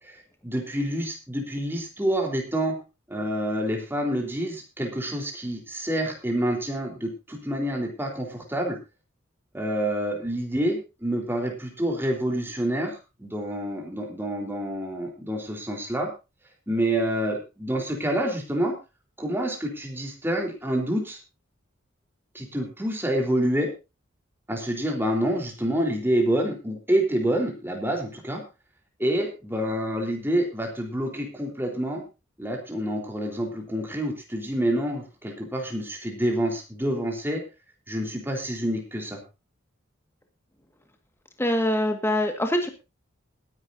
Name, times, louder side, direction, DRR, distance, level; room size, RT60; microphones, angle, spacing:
voice 1, 0.4-2.7 3.1-8.8 9.5-16.1 16.7-18.7 19.2-21.2 22.3-23.7 24.5-28.4 29.0-32.0 32.4-37.4 37.9-39.2, right 1 dB, 10° right, 2 dB, 3.9 m, -27 dB
voice 2, 41.4-42.7, left 1 dB, 10° left, 5 dB, 1.9 m, -24 dB
21.0 x 11.0 x 2.7 m, 0.28 s
head